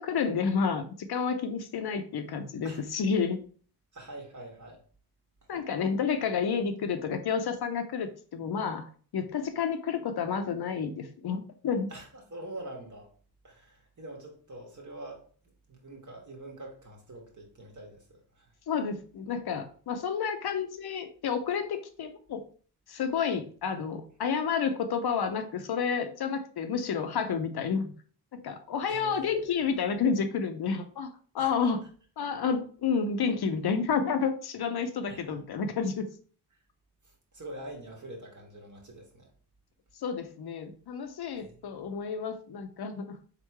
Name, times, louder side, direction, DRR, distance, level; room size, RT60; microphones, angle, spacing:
voice 1, 0.0-3.4 5.5-8.9 9.1-11.9 18.7-22.4 22.9-27.9 28.3-31.8 32.2-36.1 40.0-43.2, left 6 dB, 65° left, 0.7 m, -30 dB
voice 2, 3.9-4.8 11.9-13.1 13.4-15.2 15.7-18.5 28.9-29.6 31.4-31.7 35.1-35.4 37.0-39.3 41.4-41.8, right 1 dB, 45° right, 1.7 m, -45 dB
3.7 x 3.6 x 3.0 m
cardioid pair, 50°, 41 cm